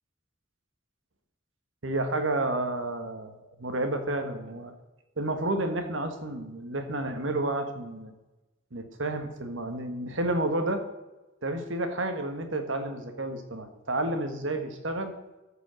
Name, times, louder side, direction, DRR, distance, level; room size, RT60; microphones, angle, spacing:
voice 1, 1.8-4.7 5.2-8.1 8.7-10.8 11.4-15.1, right 2 dB, 75° right, 7 dB, 1.5 m, -30 dB
14.0 x 5.2 x 6.4 m, 1.0 s
head